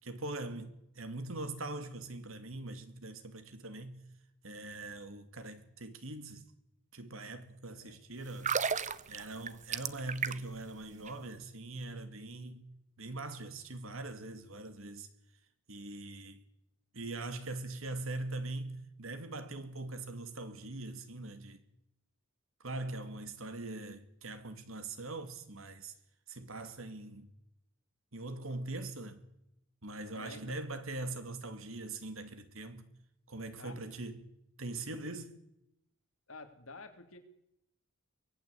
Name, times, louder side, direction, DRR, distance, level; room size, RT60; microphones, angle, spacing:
voice 1, 0.0-4.0 4.4-6.4 6.9-8.5 9.1-12.7 13.0-15.1 15.7-16.4 16.9-21.6 22.6-25.9 26.3-27.3 28.1-29.2 29.8-32.9 33.3-34.2 34.6-35.4, right 2 dB, 75° right, 2.6 m, -42 dB
sound 1, 8.3-10.6 10.9-11.1, right 6 dB, 35° right, 0.9 m, -34 dB
voice 2, 30.1-30.6 33.6-34.1 36.3-37.2, left 3 dB, 75° left, 3.3 m, -50 dB
24.0 x 18.5 x 8.5 m
head